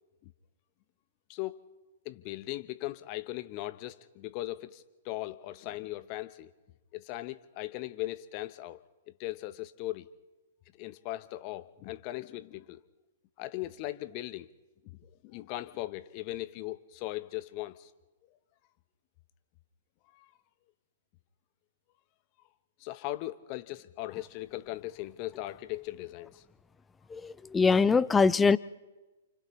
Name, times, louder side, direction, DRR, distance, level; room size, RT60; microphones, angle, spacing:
voice 1, 1.3-1.6 2.0-6.5 6.9-8.8 9.2-10.1 10.8-12.8 13.4-14.5 15.0-17.9 20.1-20.3 22.8-26.4, left 17 dB, 40° left, 1.1 m, -38 dB
voice 2, 27.1-28.6, left 4 dB, 10° left, 0.6 m, -23 dB
30.0 x 28.0 x 3.3 m
hypercardioid pair, 120°, 0 cm